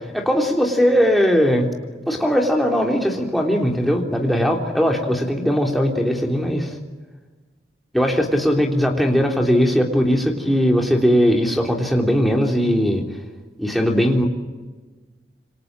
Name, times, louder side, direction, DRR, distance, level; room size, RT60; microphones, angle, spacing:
voice 1, 0.0-1.7 2.1-6.8 7.9-13.0 13.6-14.3, equal, ahead, 0 dB, 3.4 m, -19 dB
28.0 x 25.0 x 7.6 m, 1.3 s
head